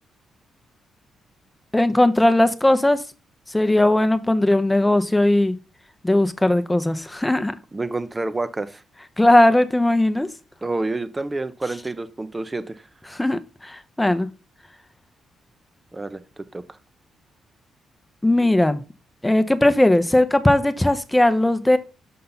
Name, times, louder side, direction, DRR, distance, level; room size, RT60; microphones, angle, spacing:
voice 1, 1.7-3.0 3.5-5.6 6.0-7.5 9.2-10.3 13.1-14.3 18.2-18.8 19.2-21.8, left 1 dB, 15° left, 0.7 m, -18 dB
voice 2, 7.7-8.8 10.6-12.8 15.9-16.8, right 2 dB, 25° right, 0.7 m, -29 dB
5.5 x 5.5 x 3.9 m
supercardioid pair, 55°, 0 cm